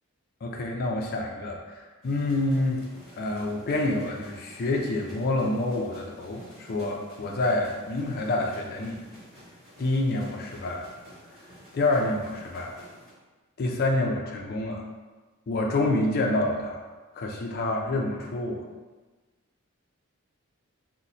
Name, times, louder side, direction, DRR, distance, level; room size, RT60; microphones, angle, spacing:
voice 1, 0.4-2.8 3.2-9.0 9.8-10.9 11.7-12.7 13.6-14.8 15.5-16.8 17.2-18.7, left 2 dB, 45° left, 0 dB, 0.4 m, -27 dB
sound 1, 2.0-13.1, equal, ahead, 1.3 m, -51 dB
2.8 x 2.0 x 3.9 m, 1.3 s
head